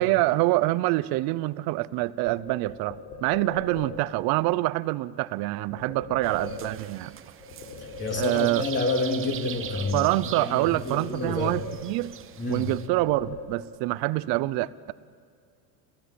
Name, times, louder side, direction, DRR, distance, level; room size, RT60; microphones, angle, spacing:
voice 1, 0.0-7.1 8.1-8.6 9.9-12.1 12.5-14.9, right 19 dB, 50° right, 16 dB, 0.8 m, -26 dB
sound 1, 2.3-4.2 5.7-7.1 7.4-8.8 9.1-10.5 10.8-12.2 12.5-13.9, left 3 dB, 85° left, 6.0 m, -41 dB
sound 2, 6.2-12.9, right 9 dB, 25° right, 1.1 m, -42 dB
voice 2, 8.0-10.1 10.4-11.6 12.4-12.7, left 2 dB, 25° left, 2 dB, 3.5 m, -28 dB
28.5 x 15.5 x 8.6 m, 2.3 s
supercardioid pair, 125°, 46 cm